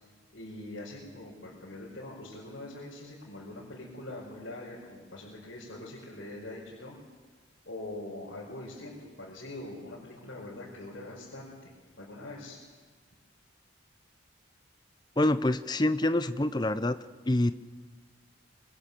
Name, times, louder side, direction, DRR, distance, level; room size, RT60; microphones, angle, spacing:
voice 1, 0.3-7.0 7.6-12.6, left 1 dB, 70° left, -5 dB, 5.1 m, -43 dB
voice 2, 15.2-17.0 17.3-17.5, left 1 dB, 20° left, 12 dB, 0.6 m, -26 dB
25.5 x 22.0 x 6.9 m, 1.4 s
head